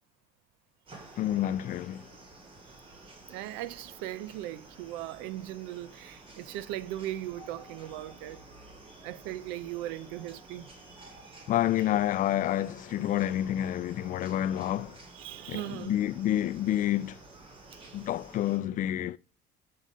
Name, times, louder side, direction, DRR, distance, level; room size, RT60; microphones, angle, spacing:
sound 1, 0.9-18.6, right 2 dB, 30° right, 2.9 m, -51 dB
voice 1, 1.2-2.1 11.5-15.0 15.5-17.2 17.9-19.2, left 12 dB, 50° left, 0.4 m, -29 dB
voice 2, 3.3-8.4 9.0-10.7 15.1-16.0, right 13 dB, 90° right, 0.6 m, -38 dB
7.6 x 5.7 x 5.0 m
cardioid pair, 105°, 17 cm